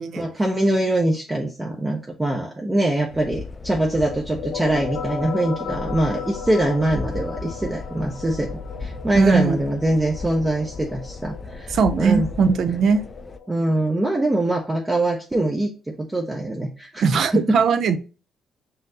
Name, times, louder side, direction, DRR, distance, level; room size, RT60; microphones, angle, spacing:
voice 1, 0.1-8.5 8.8-11.7 12.0-12.3 13.5-17.6, right 1 dB, 15° right, 0.6 m, -23 dB
sound 1, 3.1-13.4, left 3 dB, 30° left, 0.4 m, -36 dB
sound 2, 4.1-13.5, left 6 dB, 70° left, 0.8 m, -36 dB
voice 2, 9.1-9.6 11.7-13.0 17.0-18.0, right 5 dB, 65° right, 0.4 m, -19 dB
5.6 x 2.7 x 2.6 m
cardioid pair, 90°, 0 cm